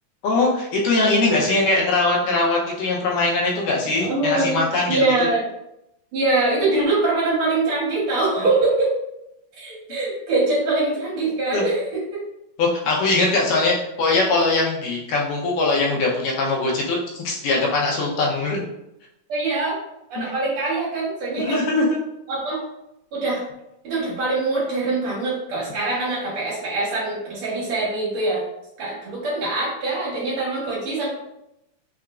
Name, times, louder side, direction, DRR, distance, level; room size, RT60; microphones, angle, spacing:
voice 1, 0.2-5.3 8.4-8.5 11.5-11.6 12.6-18.6 20.2-20.3 21.4-21.9, left 2 dB, 80° left, -2 dB, 2.4 m, -21 dB
voice 2, 4.0-5.4 6.1-8.9 9.6-12.0 19.3-19.8 20.1-21.7 22.3-22.6 23.1-23.4 23.8-28.4 28.8-31.1, right 2 dB, 55° right, -6 dB, 2.5 m, -23 dB
5.6 x 3.5 x 2.5 m, 0.84 s
omnidirectional pair, 3.8 m